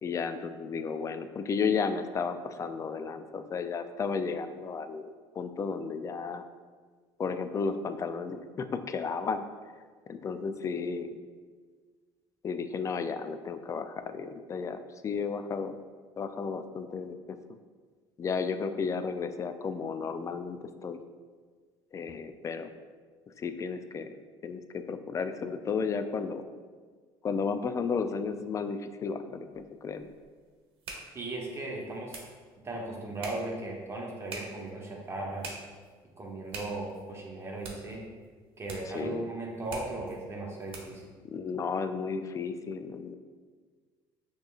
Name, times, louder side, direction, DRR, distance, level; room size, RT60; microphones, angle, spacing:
voice 1, 0.0-5.1 5.4-6.4 7.2-9.4 10.1-11.2 12.4-15.8 16.2-17.4 18.2-21.0 21.9-22.7 23.4-24.2 24.4-26.4 27.2-30.1 38.9-39.3 41.2-43.2, left 5 dB, 30° left, 10 dB, 0.3 m, -33 dB
sound 1, 29.5-41.1, right 3 dB, 60° right, 1.0 m, -47 dB
voice 2, 31.1-32.2 32.6-35.5 36.2-38.0 38.6-41.1, right 2 dB, 25° right, -1 dB, 1.0 m, -37 dB
6.4 x 3.0 x 2.4 m, 1.5 s
supercardioid pair, 95°, 10 cm